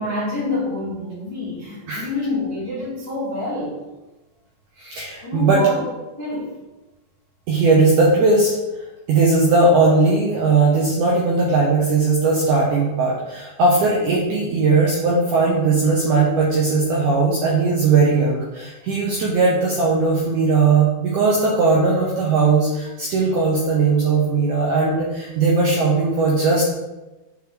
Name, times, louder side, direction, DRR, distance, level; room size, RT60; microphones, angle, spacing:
voice 1, 0.0-3.8 5.2-6.6, left 2 dB, 15° left, -10 dB, 0.9 m, -27 dB
voice 2, 4.8-5.6 7.5-26.6, right 3 dB, 75° right, -4 dB, 1.9 m, -18 dB
6.5 x 4.9 x 3.3 m, 1.1 s
omnidirectional pair, 4.6 m